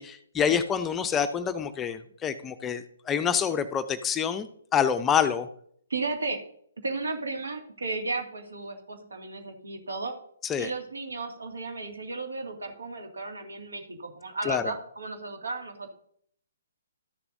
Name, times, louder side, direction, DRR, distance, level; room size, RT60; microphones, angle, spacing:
voice 1, 0.0-5.5 10.5-10.7 14.5-14.6, left 7 dB, 15° left, 10 dB, 0.5 m, -27 dB
voice 2, 5.9-6.4 6.8-10.1 10.6-15.9, right 3 dB, 75° right, 3 dB, 2.1 m, -34 dB
13.0 x 6.8 x 2.6 m, 0.64 s
figure-of-eight pair, 130°, 0 cm